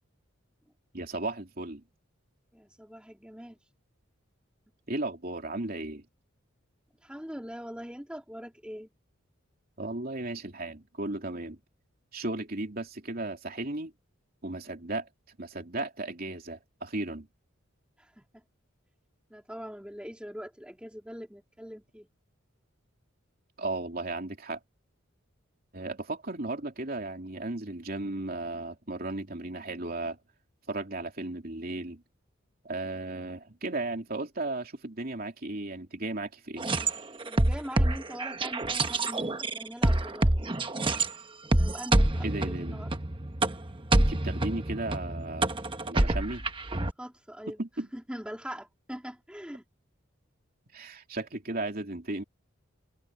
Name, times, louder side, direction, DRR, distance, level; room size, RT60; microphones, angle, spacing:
voice 1, 0.9-1.8 4.9-6.0 9.8-11.6 12.1-13.9 14.4-17.3 23.6-24.6 25.7-30.2 30.7-32.0 32.6-36.7 42.2-42.8 44.1-45.5 45.9-46.5 47.6-47.9 50.7-52.2, right 2 dB, 45° right, 3.2 m, -35 dB
voice 2, 2.5-3.6 7.0-8.9 18.2-18.4 19.3-22.1 37.2-40.3 41.5-42.9 47.0-47.6 47.9-49.6, equal, 5° right, 2.2 m, -42 dB
sound 1, 36.6-41.1 41.5-46.9, right 2 dB, 25° right, 1.1 m, -27 dB
open air
head